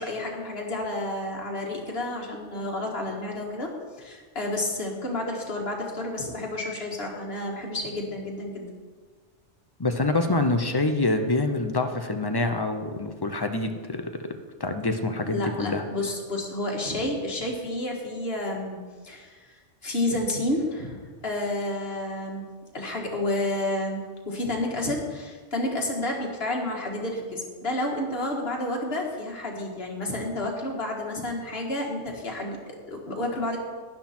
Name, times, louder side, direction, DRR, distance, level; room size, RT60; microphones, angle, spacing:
voice 1, 0.0-3.7 4.0-8.7 15.3-18.8 19.0-22.5 22.7-33.6, left 1 dB, 55° left, -1 dB, 2.1 m, -30 dB
voice 2, 9.8-14.3 14.6-15.8, left 2 dB, 25° left, 6 dB, 0.7 m, -26 dB
12.0 x 10.5 x 4.4 m, 1.5 s
omnidirectional pair, 1.3 m